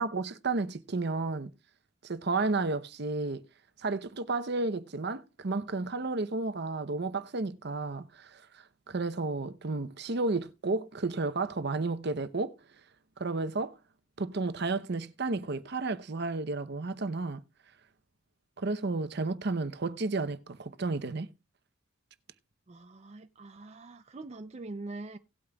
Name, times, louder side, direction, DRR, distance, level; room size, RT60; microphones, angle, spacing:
voice 1, 0.0-1.5 2.0-3.5 3.8-12.5 13.2-13.8 14.2-17.4 18.6-21.3, right 3 dB, 55° right, 0.8 m, -32 dB
voice 2, 22.7-25.2, right 2 dB, 35° right, 0.5 m, -43 dB
17.5 x 8.5 x 2.3 m
head